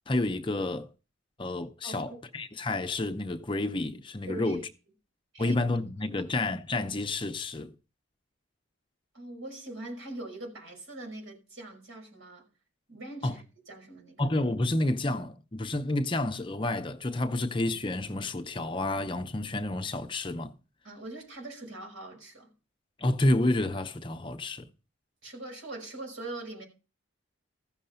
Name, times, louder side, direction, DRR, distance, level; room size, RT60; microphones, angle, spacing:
voice 1, 0.1-0.9 1.4-4.7 5.4-7.7 13.2-13.4 14.2-20.5 23.0-24.7, left 2 dB, 25° left, 0.6 m, -29 dB
voice 2, 1.8-2.3 4.3-4.6 5.3-5.6 6.1-6.3 9.1-12.5 12.9-14.2 20.8-22.5 25.2-26.6, right 2 dB, 70° right, 5.5 m, -42 dB
14.5 x 6.6 x 5.6 m
head